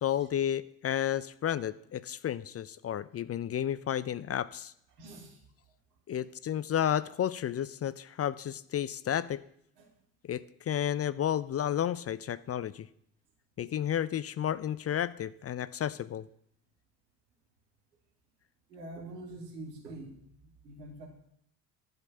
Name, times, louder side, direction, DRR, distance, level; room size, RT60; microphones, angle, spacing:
voice 1, 0.0-4.7 6.1-9.4 10.2-12.9 13.6-16.3, left 10 dB, 30° left, 18 dB, 0.5 m, -32 dB
voice 2, 5.0-5.4 6.1-6.2 9.8-9.9 18.7-21.1, right 2 dB, 85° right, 1 dB, 2.5 m, -46 dB
12.0 x 5.3 x 8.5 m, 0.70 s
hypercardioid pair, 55°, 47 cm